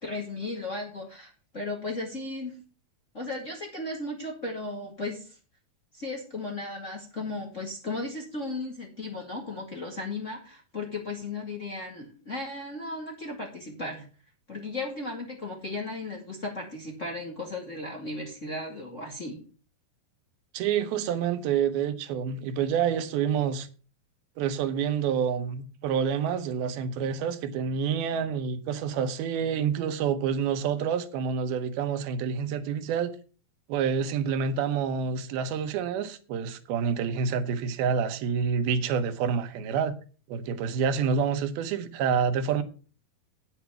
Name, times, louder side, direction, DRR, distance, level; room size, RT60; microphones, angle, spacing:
voice 1, 0.0-2.6 3.1-5.4 5.9-14.1 14.5-19.4, left 2 dB, 25° left, 1.8 m, -35 dB
voice 2, 20.5-23.7 24.4-33.1 33.7-40.0 40.3-42.6, right 7 dB, 85° right, 2.8 m, -28 dB
9.1 x 8.0 x 5.8 m
omnidirectional pair, 4.3 m